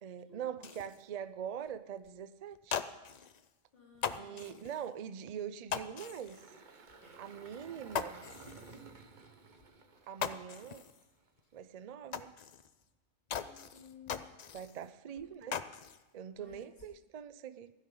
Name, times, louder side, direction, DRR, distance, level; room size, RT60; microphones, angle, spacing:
voice 1, 0.0-2.8 4.1-6.4 7.2-8.2 10.1-10.9 11.5-12.3 14.5-15.6 16.1-17.7, right 8 dB, 75° right, 14 dB, 0.3 m, -43 dB
sound 1, 0.6-1.0 1.7-1.8 2.0-2.1 2.5-3.5 3.9-4.9 5.7-6.5 6.9-7.0 7.4-7.5 7.9-8.9 9.6-9.7 10.0-11.1 11.4-11.5 12.1-12.8 13.3-14.9 15.2-16.0 16.4-17.0, left 7 dB, 85° left, 0.3 m, -40 dB
voice 2, 3.7-4.8 7.0-7.2 13.3-14.4 15.1-15.3 16.3-16.8, left 5 dB, 40° left, -3 dB, 3.4 m, -58 dB
Engine, 6.0-11.3, right 4 dB, 40° right, 1.0 m, -55 dB
16.0 x 12.5 x 3.8 m, 1.1 s
omnidirectional pair, 1.4 m